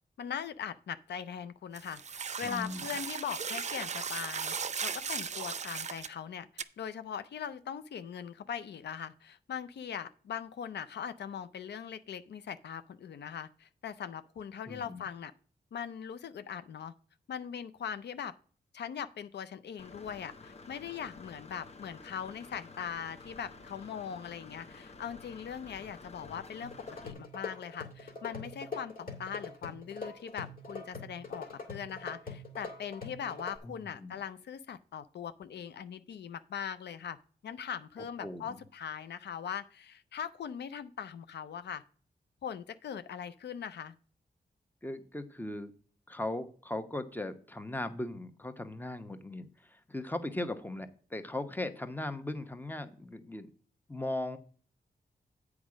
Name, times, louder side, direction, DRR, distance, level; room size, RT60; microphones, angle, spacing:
voice 1, 0.2-15.3 15.7-16.9 17.3-18.3 18.7-26.7 27.0-37.2 37.4-41.8 42.4-43.9, left 8 dB, 85° left, 12 dB, 0.5 m, -40 dB
sound 1, 1.7-6.1 6.6-6.7, right 6 dB, 45° right, 0.5 m, -37 dB
voice 2, 2.4-2.9 14.7-15.0 33.6-34.2 38.2-38.6 44.8-45.7 46.1-53.5 53.9-54.4, left 1 dB, 10° left, 9 dB, 1.0 m, -38 dB
Engine / Mechanisms, 19.8-27.1, left 3 dB, 40° left, 0.9 m, -51 dB
sound 2, 26.6-33.6, left 3 dB, 55° left, 2.6 m, -43 dB
8.1 x 4.9 x 6.2 m, 0.43 s
cardioid pair, 80°, 17 cm